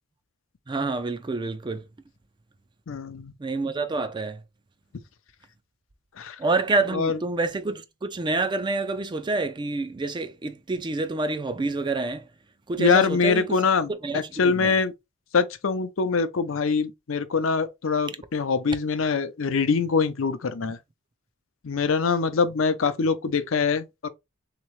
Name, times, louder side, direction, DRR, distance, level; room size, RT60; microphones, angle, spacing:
voice 1, 0.7-1.8 3.4-4.4 6.4-12.3 12.7-13.6 14.0-14.7, right 3 dB, 25° right, 0.4 m, -28 dB
voice 2, 2.9-3.3 6.2-6.4 6.9-7.2 12.8-14.9 15.3-20.8 21.6-24.1, left 5 dB, 80° left, 0.6 m, -24 dB
3.5 x 2.9 x 3.1 m
head